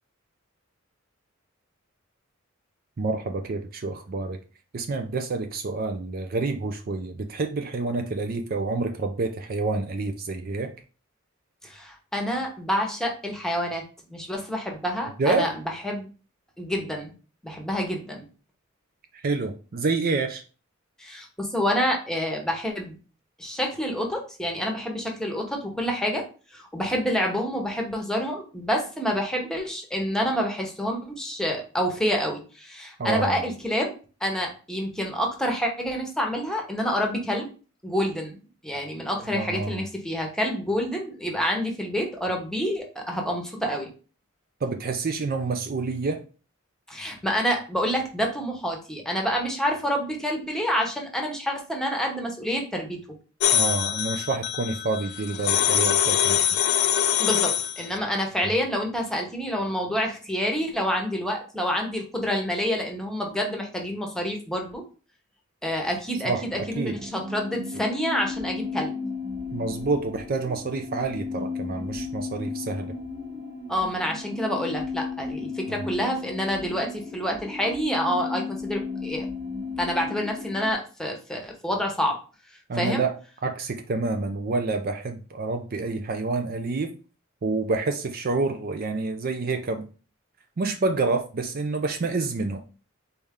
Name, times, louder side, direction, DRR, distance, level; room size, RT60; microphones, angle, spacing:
voice 1, 3.0-4.4 4.7-10.7 15.2-15.5 19.2-20.4 33.0-33.4 39.3-39.8 44.6-46.2 53.5-56.4 66.2-67.0 69.5-72.9 75.7-75.8 82.7-83.2 83.4-86.9 87.4-89.9 90.6-92.6, right 3 dB, 45° right, 0.5 m, -28 dB
voice 2, 11.6-13.8 14.1-15.5 15.8-16.1 16.6-17.1 17.4-18.2 21.0-23.0 23.4-26.2 26.5-33.9 34.2-37.5 37.8-38.4 38.6-43.9 46.9-53.0 57.2-64.8 65.6-68.9 73.7-79.3 79.8-82.2 82.7-83.0, equal, 5° left, 1.0 m, -28 dB
sound 1, 53.4-57.9, left 10 dB, 55° left, 0.4 m, -23 dB
sound 2, 66.5-80.7, left 4 dB, 25° right, 0.8 m, -34 dB
4.1 x 3.5 x 3.6 m
head